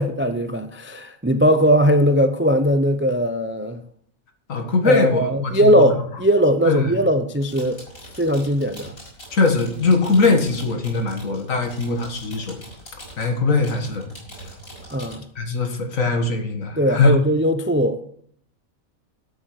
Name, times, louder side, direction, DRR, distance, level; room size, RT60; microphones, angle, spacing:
voice 1, 0.0-3.8 4.8-7.8 8.2-8.9 14.9-15.2 16.8-18.0, equal, 15° right, 0.4 m, -19 dB
voice 2, 4.5-5.9 6.7-6.8 9.3-12.6 13.2-14.1 15.4-17.2, left 3 dB, 70° left, 2.1 m, -21 dB
sound 1, 7.3-15.1, equal, 90° left, 6.3 m, -42 dB
13.0 x 7.7 x 6.5 m
omnidirectional pair, 1.5 m